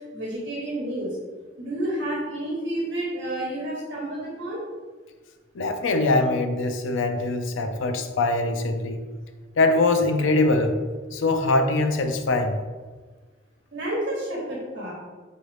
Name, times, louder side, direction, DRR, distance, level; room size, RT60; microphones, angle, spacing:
voice 1, 0.1-1.1 1.6-4.6 13.7-14.9, right 1 dB, 55° right, -4 dB, 1.0 m, -30 dB
voice 2, 5.6-9.0 9.6-10.8 11.1-12.6, left 2 dB, 75° left, 6 dB, 0.4 m, -22 dB
4.5 x 2.7 x 3.2 m, 1.4 s
head